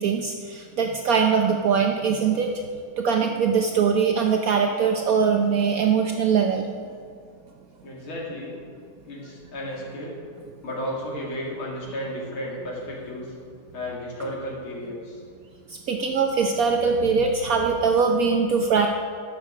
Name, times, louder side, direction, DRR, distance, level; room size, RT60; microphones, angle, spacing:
voice 1, 0.0-2.5 3.0-6.7 15.7-18.9, right 6 dB, 80° right, 3 dB, 0.7 m, -22 dB
voice 2, 7.8-8.6 9.0-10.2 10.6-13.3 13.7-15.2, equal, 70° left, -3 dB, 3.2 m, -33 dB
11.0 x 6.9 x 6.4 m, 2.3 s
omnidirectional pair, 2.4 m